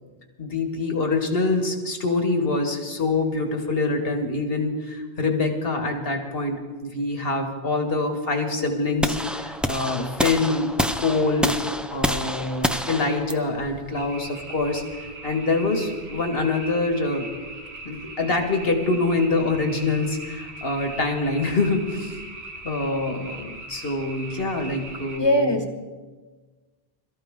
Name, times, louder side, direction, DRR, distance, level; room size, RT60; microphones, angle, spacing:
voice 1, 0.4-11.6 11.9-14.8 15.2-17.3 17.8-22.2 22.6-25.5, left 3 dB, 65° left, 4 dB, 2.0 m, -25 dB
sound 1, 9.0-15.1, equal, ahead, 0.5 m, -28 dB
sound 2, 13.9-25.2, right 2 dB, 80° right, 1.9 m, -40 dB
voice 2, 25.2-25.9, equal, 25° left, 4 dB, 1.5 m, -22 dB
22.5 x 14.0 x 3.7 m, 1.3 s
omnidirectional pair, 1.1 m